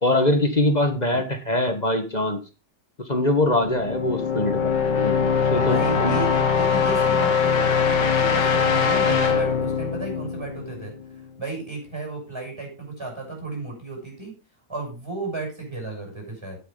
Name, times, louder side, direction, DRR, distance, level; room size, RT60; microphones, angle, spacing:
voice 1, 0.0-2.4 3.1-6.1, left 1 dB, 25° left, 7 dB, 1.3 m, -23 dB
sound 1, 3.4-11.2, left 6 dB, 75° left, 2.0 m, -22 dB
voice 2, 5.6-10.9 11.4-14.3 14.7-16.6, right 3 dB, 15° right, 1 dB, 6.3 m, -33 dB
9.7 x 8.3 x 5.3 m, 0.31 s
omnidirectional pair, 1.9 m